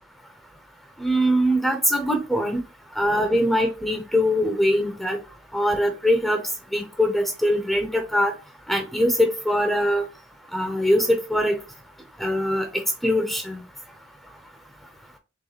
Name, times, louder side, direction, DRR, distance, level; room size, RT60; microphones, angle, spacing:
voice 1, 1.0-2.6 3.0-5.2 5.5-6.4 6.7-8.3 8.7-10.1 10.5-11.6 12.2-13.6, equal, ahead, 5 dB, 0.6 m, -22 dB
3.9 x 3.5 x 2.9 m, 0.31 s
head